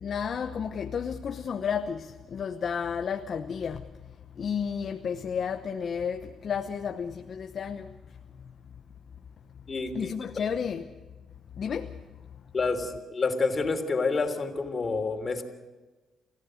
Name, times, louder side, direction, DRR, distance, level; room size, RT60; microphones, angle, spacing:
voice 1, 0.0-3.8 4.4-7.9 9.9-10.9 11.6-11.9, left 7 dB, 55° left, 0.9 m, -32 dB
voice 2, 9.7-10.4 12.5-15.4, left 4 dB, 35° left, 3.4 m, -29 dB
28.5 x 15.5 x 6.5 m
cardioid pair, 90°, 0 cm